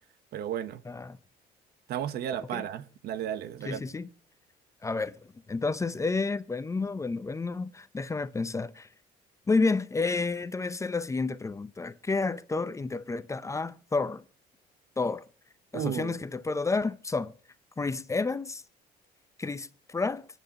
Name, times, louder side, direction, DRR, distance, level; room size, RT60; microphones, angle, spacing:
voice 1, 0.3-0.8 1.9-3.8 15.7-16.1, right 10 dB, 70° right, 1.0 m, -33 dB
voice 2, 0.9-1.2 2.5-2.6 3.7-4.1 4.8-5.1 5.5-8.9 9.5-14.2 15.0-15.2 15.7-17.3 17.8-18.6 19.4-20.3, left 3 dB, 20° left, 0.6 m, -30 dB
25.0 x 10.0 x 2.9 m
cardioid pair, 110°, 17 cm